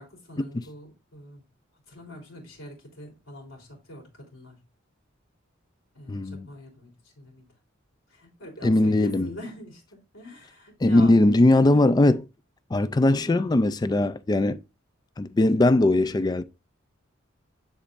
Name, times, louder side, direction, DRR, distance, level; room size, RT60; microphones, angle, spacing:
voice 1, 0.0-1.4 1.9-4.6 5.9-7.5 8.1-11.1 11.6-11.8, left 1 dB, 85° left, 3.6 m, -44 dB
voice 2, 6.1-6.5 8.6-9.3 10.8-12.2 12.7-14.6 15.2-16.4, left 2 dB, 20° left, 0.3 m, -20 dB
10.0 x 4.2 x 2.5 m
head